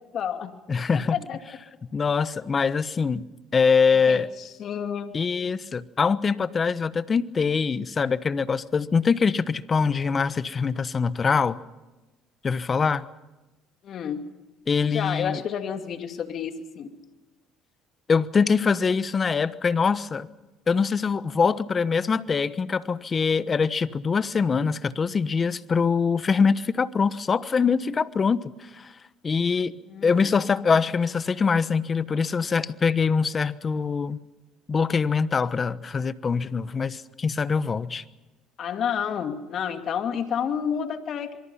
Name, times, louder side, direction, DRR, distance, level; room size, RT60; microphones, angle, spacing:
voice 1, 0.1-0.5 1.1-1.4 3.9-5.1 13.8-14.2 14.9-17.0 29.9-30.3 38.6-41.4, left 8 dB, 55° left, 6 dB, 2.5 m, -30 dB
voice 2, 0.7-1.2 1.9-3.2 3.5-4.3 5.1-11.6 12.4-13.1 14.7-15.4 18.1-20.3 20.7-28.9 29.2-29.8 30.0-34.2 34.7-38.0, left 5 dB, 35° left, 15 dB, 1.1 m, -23 dB
26.0 x 24.0 x 5.7 m, 1.1 s
supercardioid pair, 85°, 0 cm